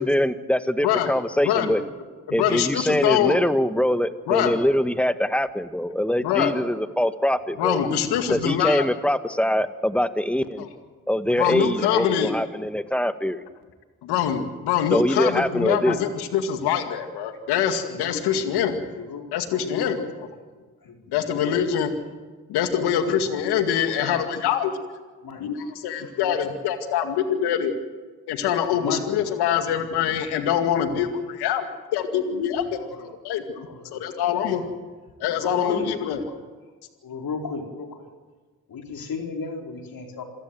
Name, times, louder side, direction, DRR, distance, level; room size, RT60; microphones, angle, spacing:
voice 1, 0.0-1.8 2.3-7.8 8.3-10.6 11.1-13.4 14.9-16.0, equal, 5° left, 10 dB, 1.7 m, -23 dB
voice 2, 1.4-1.8 2.3-3.4 4.3-4.6 6.2-6.5 7.6-8.9 10.6-10.7 11.3-12.3 14.0-18.8 19.3-20.3 21.1-21.9 22.5-24.8 25.4-27.7 28.3-31.7 31.9-32.8 33.2-34.6 35.2-36.2, left 9 dB, 80° left, 7 dB, 2.2 m, -24 dB
voice 3, 17.9-18.5 18.9-19.3 19.6-20.1 20.8-21.6 22.8-23.7 25.2-25.4 26.0-26.5 28.7-29.2 32.8-33.1 33.6-34.1 34.5-34.7 35.4-36.4 37.0-38.1 38.7-40.2, left 4 dB, 65° left, 2 dB, 4.5 m, -35 dB
27.0 x 16.5 x 7.8 m, 1.4 s
hypercardioid pair, 40°, 39 cm